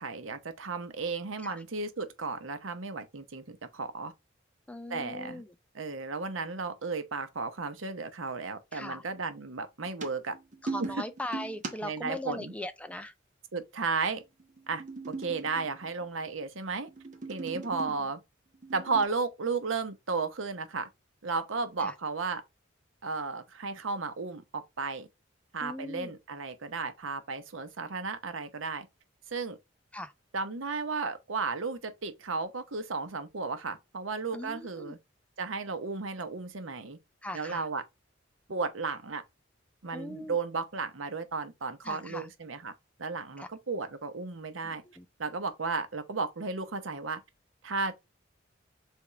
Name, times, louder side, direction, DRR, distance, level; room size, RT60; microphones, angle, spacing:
voice 1, 0.0-4.1 4.9-5.4 5.7-10.4 10.8-11.0 11.8-12.5 13.5-14.2 14.7-16.9 17.3-18.2 18.7-20.9 21.2-22.4 23.0-25.1 25.5-28.9 29.3-29.6 30.3-35.0 35.4-37.0 37.3-37.8 38.5-39.2 39.8-42.7 43.0-44.8 45.2-47.2 47.6-47.9, right 4 dB, 80° right, 0.8 m, -34 dB
voice 2, 4.7-5.5 8.7-9.0 10.7-13.1 21.8-21.9 25.6-26.1 29.9-30.1 34.3-34.9 37.2-37.6 39.9-40.4 41.9-42.3 43.4-43.5 44.6-45.0, left 1 dB, 5° left, 0.4 m, -39 dB
sound 1, 9.8-12.1 14.4-16.2 16.7-18.0 18.5-19.1, right 3 dB, 40° right, 1.0 m, -40 dB
3.6 x 3.5 x 4.1 m
head